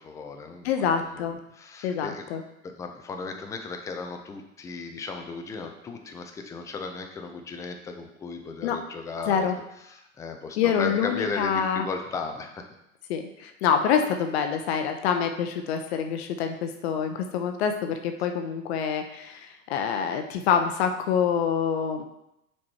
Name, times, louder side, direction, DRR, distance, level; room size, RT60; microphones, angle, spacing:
voice 1, 0.0-0.9 1.1-2.3 2.6-9.5 9.9-12.6, left 4 dB, 10° left, 4 dB, 0.4 m, -36 dB
voice 2, 0.6-1.4 1.8-2.4 8.6-8.8 9.3-9.5 10.6-11.8 13.1-22.0, left 7 dB, 50° left, 6 dB, 0.8 m, -26 dB
5.9 x 4.6 x 4.4 m, 0.85 s
figure-of-eight pair, 100°, 41 cm